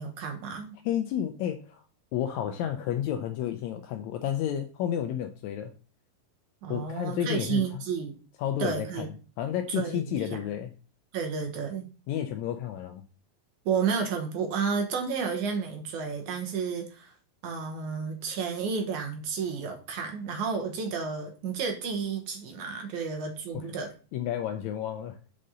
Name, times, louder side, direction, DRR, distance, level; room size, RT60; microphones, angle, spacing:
voice 1, 0.0-0.7 6.6-8.1 8.6-9.1 9.7-10.2 11.1-11.9 13.7-17.1 17.4-23.9, right 5 dB, 70° right, 3 dB, 2.2 m, -31 dB
voice 2, 0.8-1.8 2.1-5.7 6.7-7.8 8.4-9.1 9.4-10.7 12.1-13.0 23.5-23.7 24.1-25.2, left 10 dB, 85° left, 6 dB, 1.6 m, -31 dB
6.7 x 5.3 x 3.7 m, 0.36 s
omnidirectional pair, 3.9 m